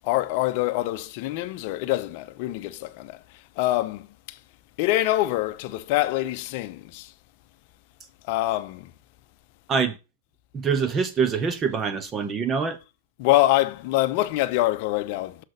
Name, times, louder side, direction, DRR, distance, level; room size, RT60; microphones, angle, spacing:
voice 1, 0.0-3.2 3.6-4.4 4.8-7.1 8.3-8.9 13.2-15.4, left 16 dB, 50° left, 0.7 m, -25 dB
voice 2, 10.5-12.8, right 6 dB, 25° right, 1.1 m, -25 dB
6.6 x 3.9 x 6.4 m
hypercardioid pair, 125°, 0 cm